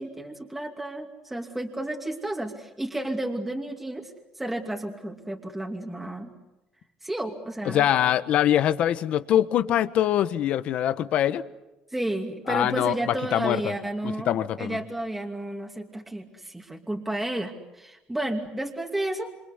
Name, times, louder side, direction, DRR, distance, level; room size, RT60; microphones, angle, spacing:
voice 1, 0.0-4.1 4.4-6.3 7.0-7.9 11.9-19.3, right 1 dB, 5° right, 2.6 m, -32 dB
voice 2, 7.7-11.4 12.5-12.9 13.3-13.7 14.0-14.8, left 11 dB, 60° left, 1.3 m, -23 dB
28.0 x 25.5 x 8.2 m
cardioid pair, 130°, 2 cm